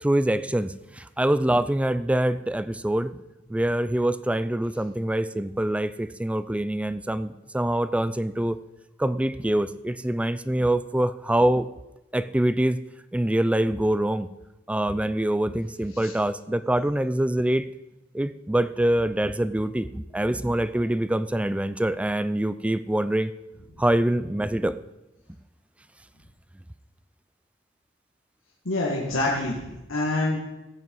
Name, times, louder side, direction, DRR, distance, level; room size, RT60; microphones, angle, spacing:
voice 1, 0.0-3.1 3.5-8.6 9.0-11.7 12.1-12.8 13.1-14.3 14.7-17.7 18.1-23.3 23.8-24.8, right 1 dB, 5° right, 15 dB, 0.4 m, -25 dB
voice 2, 28.7-30.4, left 2 dB, 80° left, -4 dB, 1.8 m, -26 dB
15.5 x 8.5 x 4.7 m, 1.0 s
head